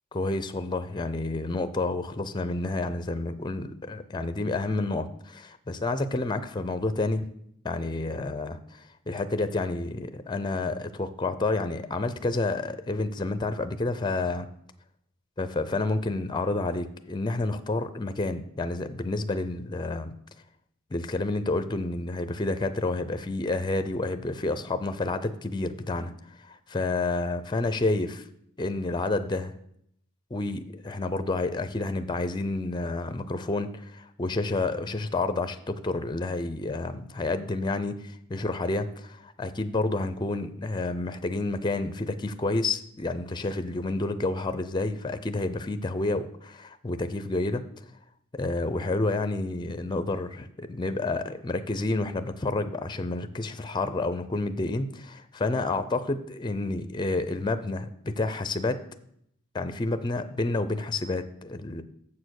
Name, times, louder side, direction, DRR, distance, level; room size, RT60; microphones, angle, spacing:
voice 1, 0.1-7.3 7.6-14.5 15.4-20.1 20.9-26.1 26.4-28.3 28.6-29.5 30.3-47.6 48.3-58.8 59.5-61.8, left 2 dB, 20° left, 11 dB, 0.5 m, -29 dB
7.3 x 6.5 x 6.4 m, 0.71 s
head